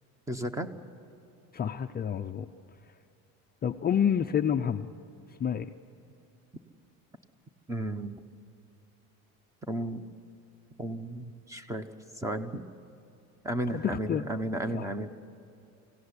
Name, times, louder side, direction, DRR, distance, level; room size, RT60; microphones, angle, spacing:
voice 1, 0.3-0.7 7.7-8.2 9.7-10.0 10.8-11.8 12.2-12.6 13.4-15.1, right 1 dB, 10° right, 9 dB, 1.1 m, -33 dB
voice 2, 1.5-2.5 3.6-4.9 5.4-5.7 13.7-14.3 14.7-14.9, left 8 dB, 25° left, 6 dB, 0.6 m, -28 dB
25.5 x 16.5 x 9.8 m, 2.9 s
cardioid pair, 140°, 36 cm